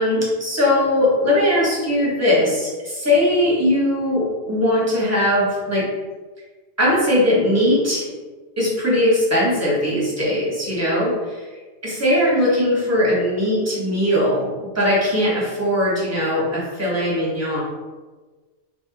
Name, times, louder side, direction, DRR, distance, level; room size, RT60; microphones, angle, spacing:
voice 1, 0.0-5.9 6.8-8.0 8.6-11.5 11.8-14.5 14.7-17.6, left 1 dB, 15° right, -6 dB, 0.8 m, -19 dB
2.5 x 2.0 x 3.8 m, 1.3 s
omnidirectional pair, 1.2 m